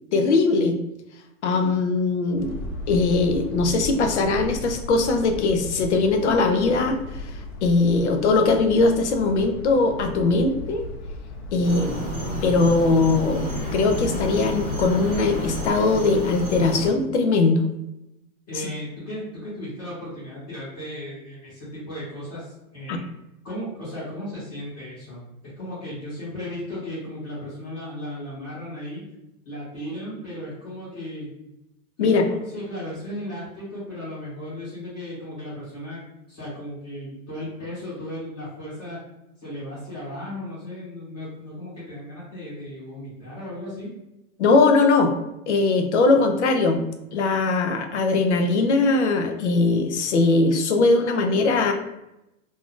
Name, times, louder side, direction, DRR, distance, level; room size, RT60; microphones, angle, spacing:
voice 1, 0.1-0.8 1.4-2.5 2.9-7.0 7.6-10.8 11.5-11.9 12.4-13.5 13.7-17.6 22.9-23.0 32.0-32.2 44.4-45.1 45.5-46.8 47.1-51.7, left 3 dB, 55° left, 5 dB, 0.5 m, -20 dB
sound 1, 2.4-15.7, left 2 dB, 80° left, 0.9 m, -36 dB
sound 2, 11.6-16.9, equal, 25° right, 0.6 m, -30 dB
voice 2, 18.5-23.0 23.4-25.2 25.6-29.0 29.4-31.3 32.0-36.0 36.3-39.0 39.4-43.9, equal, 20° left, -13 dB, 1.1 m, -35 dB
2.6 x 2.4 x 3.5 m, 0.89 s
supercardioid pair, 180°, 43 cm